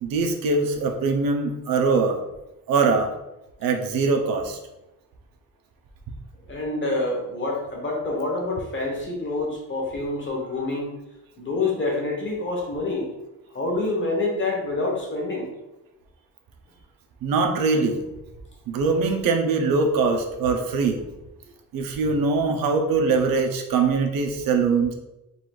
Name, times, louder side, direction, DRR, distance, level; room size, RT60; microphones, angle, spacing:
voice 1, 0.0-2.2 2.7-3.1 3.6-4.6 17.2-18.0 18.7-21.0 21.7-24.9, right 4 dB, 90° right, 4 dB, 0.7 m, -22 dB
voice 2, 6.5-11.0 11.4-13.1 13.5-15.5, left 2 dB, 35° left, -2 dB, 1.1 m, -27 dB
4.0 x 2.5 x 4.8 m, 0.95 s
wide cardioid pair, 180°, 34 cm